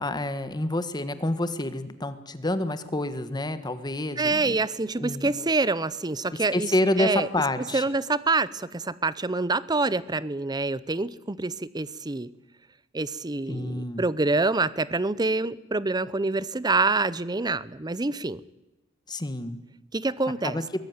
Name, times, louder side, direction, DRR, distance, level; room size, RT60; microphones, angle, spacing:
voice 1, 0.0-4.6 5.0-5.3 6.5-7.8 13.5-14.0 19.1-19.6 20.4-20.6, left 1 dB, 20° left, 12 dB, 1.4 m, -28 dB
voice 2, 4.2-6.7 7.0-7.3 7.7-12.3 12.9-18.4 19.9-20.6, right 3 dB, 20° right, 19 dB, 0.7 m, -26 dB
22.5 x 15.0 x 9.4 m, 1.0 s
head